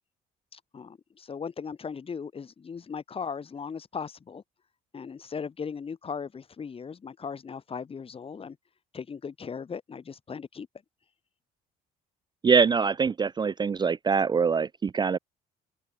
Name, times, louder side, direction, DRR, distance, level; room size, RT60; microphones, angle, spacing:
voice 1, 0.5-4.4 4.9-8.6 8.9-10.7, left 6 dB, 35° left, 4.3 m, -38 dB
voice 2, 12.4-15.2, right 5 dB, 25° right, 0.6 m, -24 dB
open air
cardioid pair, 110°, 17 cm